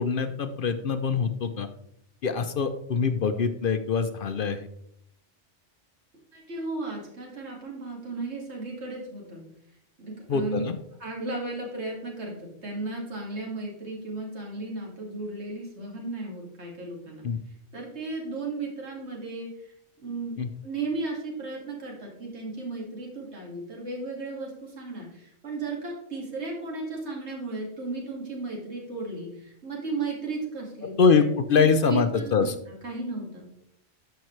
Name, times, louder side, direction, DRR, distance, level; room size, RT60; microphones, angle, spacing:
voice 1, 0.0-1.7 2.2-4.7 10.3-10.8 17.2-17.4 20.4-20.5 30.8-32.5, left 5 dB, 55° left, 9 dB, 0.7 m, -24 dB
voice 2, 6.3-9.4 10.0-10.6 11.0-17.2 17.7-20.4 20.6-30.9 31.5-32.5 32.8-33.5, right 3 dB, 65° right, -2 dB, 2.4 m, -35 dB
12.0 x 5.7 x 3.1 m, 0.73 s
omnidirectional pair, 1.2 m